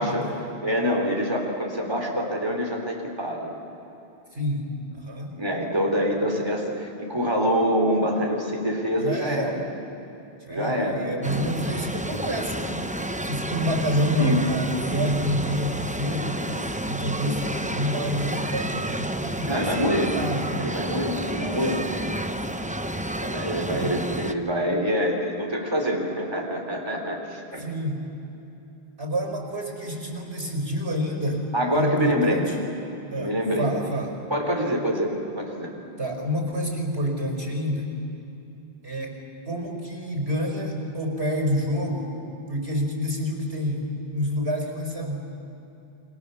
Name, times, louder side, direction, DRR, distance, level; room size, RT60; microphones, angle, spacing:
voice 1, 0.0-0.5 4.3-5.3 9.0-9.5 10.5-12.9 13.2-16.4 16.8-20.7 23.7-24.0 27.5-28.0 29.0-31.4 31.7-32.6 33.1-34.1 36.0-37.9 38.8-39.2 39.4-42.1 42.5-45.2, equal, 75° right, 2 dB, 5.0 m, -28 dB
voice 2, 0.6-3.6 5.3-9.6 10.5-11.0 14.2-14.4 19.4-20.1 20.6-21.8 23.2-27.6 31.5-32.4 33.1-33.7 34.3-35.7, equal, 25° right, 1 dB, 3.8 m, -25 dB
sound 1, 11.2-24.3, right 1 dB, 10° right, 0.7 m, -30 dB
29.5 x 23.5 x 7.2 m, 2.9 s
omnidirectional pair, 1.1 m